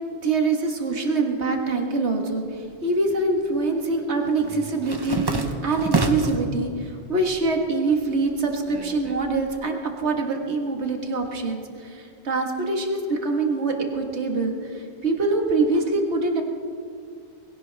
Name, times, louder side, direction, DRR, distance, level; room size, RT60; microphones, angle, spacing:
voice 1, 0.2-16.4, right 3 dB, 80° right, 3 dB, 1.8 m, -24 dB
sound 1, 2.6-3.4 3.7-6.5 6.9-7.6 7.9-9.6, right 3 dB, 25° right, 0.9 m, -28 dB
21.0 x 16.5 x 3.4 m, 2.3 s
omnidirectional pair, 1.1 m